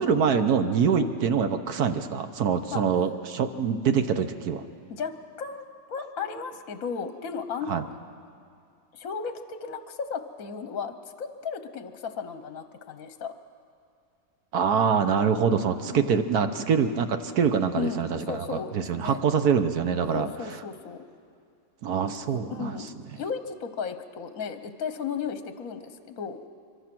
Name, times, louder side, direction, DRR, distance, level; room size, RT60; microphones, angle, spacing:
voice 1, 0.0-4.6 7.7-7.8 14.5-20.3 21.8-22.8, right 6 dB, 60° right, 9 dB, 1.3 m, -25 dB
voice 2, 4.9-7.9 8.9-13.3 15.9-16.1 17.7-19.2 20.1-21.0 22.0-22.9 23.2-26.4, left 6 dB, 55° left, 9 dB, 1.2 m, -35 dB
25.0 x 23.5 x 6.1 m, 2.4 s
omnidirectional pair, 2.0 m